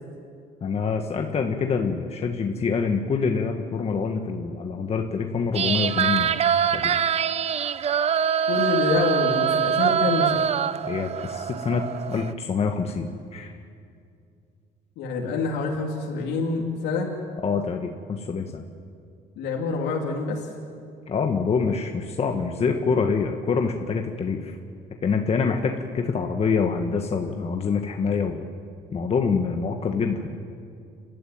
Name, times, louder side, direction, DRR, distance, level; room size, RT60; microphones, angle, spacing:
voice 1, 0.6-6.4 6.7-6.9 10.9-13.5 17.4-18.6 21.1-24.6 25.0-28.5 28.9-30.3, left 5 dB, 35° left, 3 dB, 1.5 m, -26 dB
sound 1, 5.5-12.3, right 8 dB, 40° right, 0.7 m, -24 dB
voice 2, 8.5-10.4 15.0-17.1 19.4-20.5, left 4 dB, 85° left, -1 dB, 2.9 m, -26 dB
30.0 x 13.0 x 9.5 m, 2.4 s
cardioid pair, 110°, 17 cm